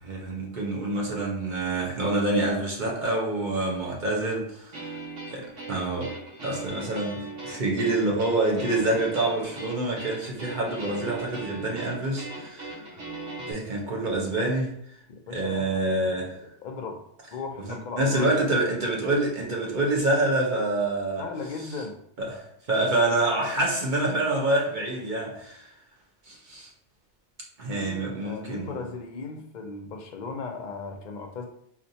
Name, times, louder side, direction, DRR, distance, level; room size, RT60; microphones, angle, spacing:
voice 1, 0.0-4.8 5.3-6.1 6.4-12.7 13.5-14.7 15.3-16.3 17.7-21.2 22.2-25.7 26.3-26.7 27.6-28.8, right 2 dB, 45° right, -2 dB, 0.8 m, -27 dB
sound 1, 4.7-13.5, right 3 dB, 85° right, 1.1 m, -39 dB
voice 2, 15.3-17.0 17.3-18.3 21.2-22.0 27.7-31.4, left 4 dB, 55° left, 2 dB, 0.5 m, -37 dB
4.3 x 2.5 x 2.7 m, 0.74 s
omnidirectional pair, 1.2 m